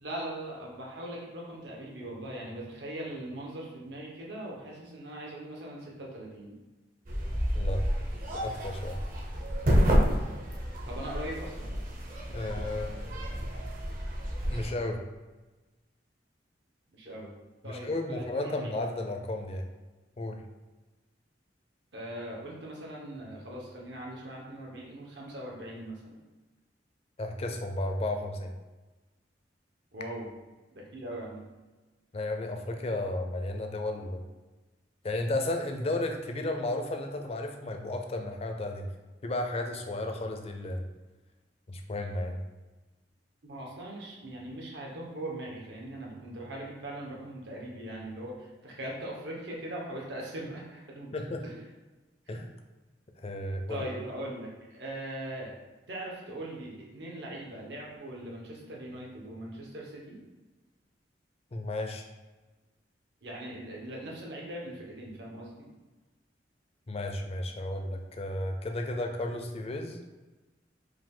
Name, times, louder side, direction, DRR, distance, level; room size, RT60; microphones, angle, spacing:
voice 1, 0.0-6.5 10.9-11.7 16.9-17.3 17.6-18.7 21.9-26.2 29.9-30.3 30.7-31.4 43.4-51.2 51.4-51.5 52.3-52.4 53.7-55.5 55.9-60.2 63.2-65.7, right 1 dB, 80° right, -3 dB, 1.1 m, -40 dB
sound 1, 7.1-14.7, equal, 50° right, 0.7 m, -29 dB
voice 2, 7.5-7.8 8.4-9.0 12.3-12.9 14.5-15.0 17.6-19.7 20.2-20.4 27.2-28.5 32.1-34.2 35.0-38.9 39.2-40.8 41.7-42.4 51.1-51.4 52.3-52.5 53.2-53.8 61.5-62.0 66.9-70.0, left 1 dB, 35° left, 4 dB, 0.5 m, -33 dB
4.9 x 2.4 x 3.8 m, 1.2 s
head